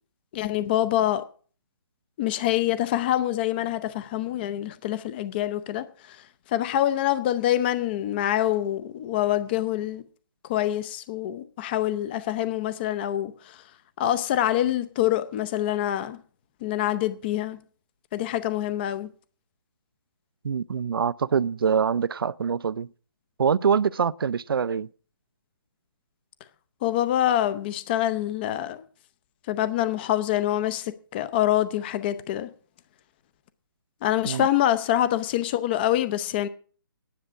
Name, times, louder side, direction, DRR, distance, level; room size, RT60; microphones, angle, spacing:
voice 1, 0.3-1.2 2.2-6.2 6.5-10.0 10.4-13.6 14.0-16.2 16.6-17.6 18.1-19.1 26.8-28.8 29.5-32.5 34.0-36.5, left 12 dB, 25° left, 0.6 m, -25 dB
voice 2, 20.4-22.9 23.4-24.9 34.3-34.5, right 6 dB, 75° right, 0.5 m, -24 dB
10.5 x 7.4 x 8.0 m
hypercardioid pair, 155°, 12 cm